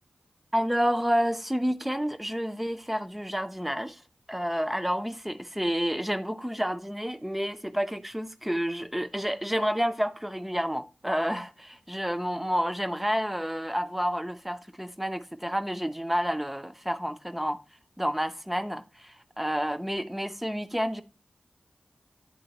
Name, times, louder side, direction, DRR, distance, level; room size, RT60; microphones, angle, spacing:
voice 1, 0.5-4.0 4.3-17.6 18.0-21.0, equal, 5° right, 0.5 m, -29 dB
10.5 x 3.7 x 2.8 m
wide cardioid pair, 60°, 3 cm